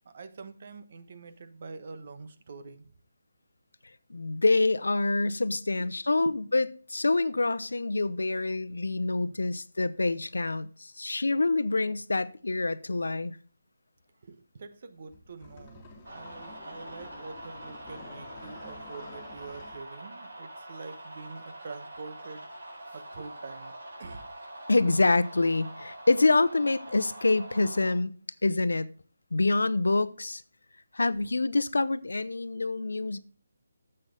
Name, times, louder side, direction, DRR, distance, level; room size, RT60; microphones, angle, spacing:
voice 1, 0.0-2.9 5.3-5.4 5.8-6.0 6.2-6.3 9.2-9.4 14.2-22.5 22.9-23.7 24.0-24.3 32.5-32.6, right 4 dB, 50° right, 1.0 m, -45 dB
voice 2, 4.1-13.4 24.7-28.1 28.4-28.9 29.3-30.4 30.9-33.2, left 3 dB, 80° left, 0.7 m, -26 dB
sound 1, 15.1-19.8, left 4 dB, 20° left, 2.1 m, -49 dB
sound 2, 16.0-27.9, right 1 dB, 75° right, 3.9 m, -45 dB
10.0 x 7.7 x 3.7 m
figure-of-eight pair, 160°, 0 cm